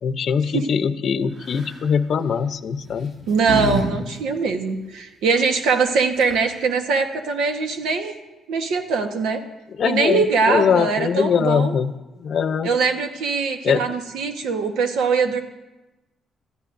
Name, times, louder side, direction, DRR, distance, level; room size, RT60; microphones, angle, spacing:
voice 1, 0.0-3.1 9.8-11.9 12.2-12.7 13.6-13.8, left 6 dB, 60° left, 12 dB, 0.7 m, -21 dB
sound 1, 1.4-1.8 2.8-3.9 4.1-4.2 5.9-6.0 6.2-6.6, right 2 dB, 50° right, 5.7 m, -27 dB
voice 2, 3.3-8.1 8.5-9.4 9.8-11.8 12.6-15.4, right 4 dB, 85° right, 6 dB, 1.2 m, -22 dB
26.0 x 13.5 x 2.6 m, 1.0 s
cardioid pair, 90°, 0 cm